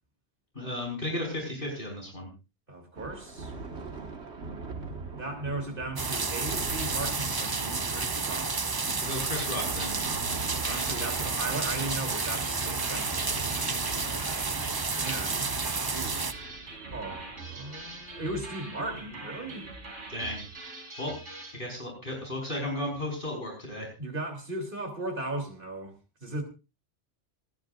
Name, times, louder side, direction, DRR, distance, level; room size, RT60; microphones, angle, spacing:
voice 1, 0.6-2.3 9.0-10.0 20.1-20.4 21.0-21.1 21.5-23.9, left 1 dB, 50° left, 5.5 m, -34 dB
voice 2, 2.7-3.5 5.2-8.6 10.6-13.8 15.0-15.5 15.8-16.3 16.9-19.7 24.0-26.4, right 2 dB, 50° right, 3.6 m, -37 dB
Thunder, 3.0-20.6, right 4 dB, 70° right, 2.0 m, -44 dB
sound 1, 6.0-16.3, right 4 dB, 25° right, 0.5 m, -31 dB
sound 2, 10.3-21.6, right 2 dB, 90° right, 3.9 m, -43 dB
27.0 x 10.5 x 2.6 m
omnidirectional pair, 1.2 m